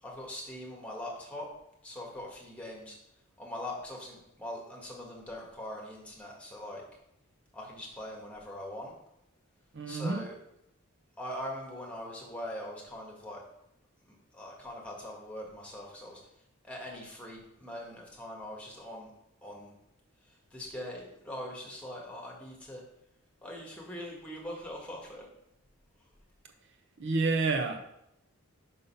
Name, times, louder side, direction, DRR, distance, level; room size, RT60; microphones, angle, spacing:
voice 1, 0.0-1.5 1.8-3.0 3.4-6.8 7.5-8.9 9.9-10.3 11.2-13.4 14.1-16.2 16.6-19.1 19.4-19.7 20.5-22.8 23.4-25.3, left 1 dB, 5° left, -2 dB, 1.6 m, -42 dB
voice 2, 9.7-10.2 27.0-27.8, right 3 dB, 55° right, 5 dB, 0.7 m, -29 dB
5.5 x 5.3 x 5.5 m, 0.82 s
head